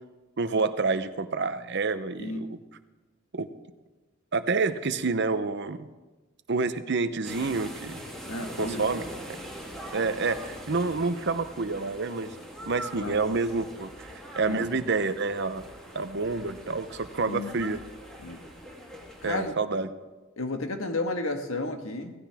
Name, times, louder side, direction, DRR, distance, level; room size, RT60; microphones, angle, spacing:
voice 1, 0.4-2.6 3.3-3.5 4.3-5.9 6.5-8.0 8.6-9.0 9.9-12.3 12.7-14.1 14.4-15.6 15.9-17.8 19.2-19.9, right 4 dB, 55° right, 11 dB, 0.8 m, -28 dB
voice 2, 2.2-2.5 8.2-8.8 13.0-13.2 14.4-14.7 17.3-17.5 18.2-18.4 19.2-19.5 20.4-22.1, left 2 dB, 75° left, 5 dB, 1.6 m, -32 dB
sound 1, 7.2-19.5, equal, 5° left, 2.7 m, -42 dB
17.0 x 16.0 x 3.5 m, 1.2 s
head